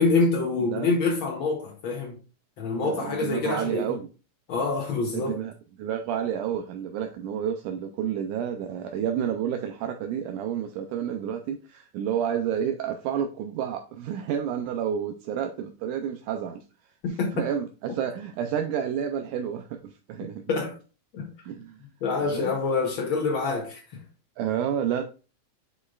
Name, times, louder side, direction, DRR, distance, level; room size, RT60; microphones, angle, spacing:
voice 1, 0.0-2.2 2.6-3.9 4.5-5.4 17.0-17.3 20.5-20.7 21.1-21.3 22.0-24.0, left 4 dB, 80° left, 1.1 m, -26 dB
voice 2, 0.6-0.9 2.8-4.1 5.1-16.7 17.1-20.4 21.4-21.8 22.2-22.6 24.4-25.0, right 9 dB, 80° right, 2.1 m, -30 dB
8.1 x 5.4 x 2.4 m
omnidirectional pair, 3.6 m